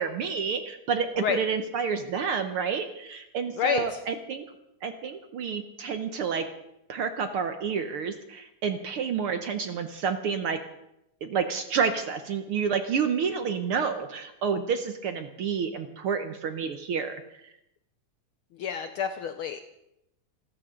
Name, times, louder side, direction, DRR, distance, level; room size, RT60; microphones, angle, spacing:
voice 1, 0.0-4.4 4.8-6.5 6.9-10.6 11.2-17.5, right 6 dB, 60° right, 7 dB, 1.5 m, -29 dB
voice 2, 3.6-4.0 18.6-19.6, left 7 dB, 85° left, 8 dB, 1.1 m, -28 dB
27.0 x 13.5 x 3.8 m, 0.85 s
omnidirectional pair, 3.4 m